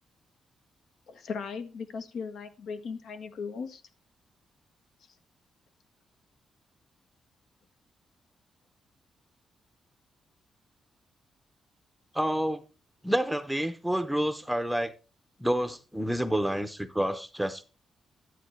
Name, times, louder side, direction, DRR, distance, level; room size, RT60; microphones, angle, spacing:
voice 1, 1.1-3.8, left 5 dB, 70° left, 1.4 m, -37 dB
voice 2, 12.1-12.6 13.0-14.9 15.4-17.6, equal, ahead, 0.7 m, -28 dB
11.5 x 8.4 x 3.2 m
wide cardioid pair, 155°, 0 cm